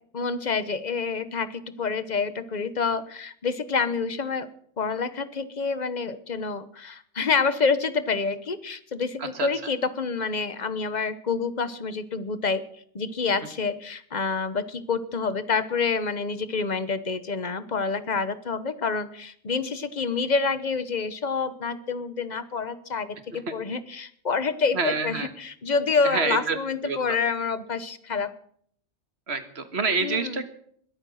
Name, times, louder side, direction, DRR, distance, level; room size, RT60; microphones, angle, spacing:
voice 1, 0.1-4.5 4.8-12.6 12.9-28.3 30.0-30.4, left 4 dB, 40° left, 13 dB, 1.1 m, -27 dB
voice 2, 24.7-25.3 26.0-26.6 26.8-27.0 29.3-30.4, right 4 dB, 60° right, 9 dB, 1.8 m, -27 dB
21.5 x 8.9 x 6.4 m, 0.64 s
omnidirectional pair, 1.2 m